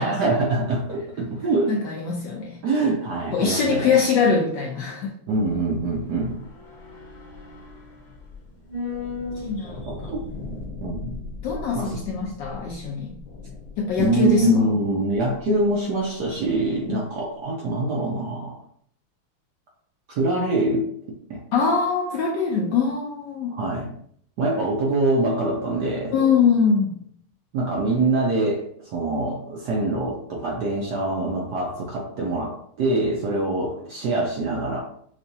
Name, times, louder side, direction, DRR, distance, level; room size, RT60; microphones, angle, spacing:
voice 1, 0.0-1.8 2.6-4.0 5.3-6.4 9.9-10.2 10.8-11.2 11.7-12.0 14.0-18.6 20.1-20.9 21.3-21.4 23.5-23.9 24.4-26.1 27.5-34.8, right 2 dB, 70° right, -1 dB, 1.0 m, -24 dB
voice 2, 1.7-2.6 3.3-5.1 9.4-9.8 11.4-13.2 13.8-14.7 16.9-17.0 21.5-23.5 26.1-26.9, left 5 dB, 75° left, -1 dB, 1.0 m, -22 dB
sound 1, 5.3-15.8 16.0-16.1, left 3 dB, 55° left, 1.4 m, -38 dB
5.8 x 2.2 x 2.7 m, 0.65 s
omnidirectional pair, 2.4 m